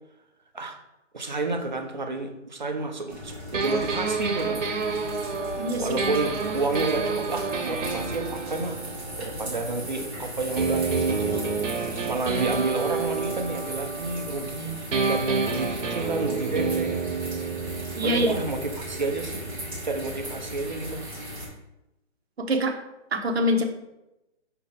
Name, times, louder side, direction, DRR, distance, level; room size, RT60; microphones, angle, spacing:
voice 1, 1.1-4.8 5.8-8.8 9.2-11.5 12.1-17.0 18.0-19.5 19.8-21.0, right 3 dB, 40° right, 4 dB, 0.6 m, -30 dB
sound 1, 3.1-21.5, equal, 5° right, 1.5 m, -37 dB
sound 2, 3.5-10.1 10.6-14.6 14.9-20.7, right 4 dB, 80° right, 1.0 m, -30 dB
voice 2, 18.0-18.4 22.4-22.7 23.1-23.6, equal, 55° right, 3 dB, 1.0 m, -24 dB
6.3 x 4.4 x 3.5 m, 0.93 s
hypercardioid pair, 170°, 37 cm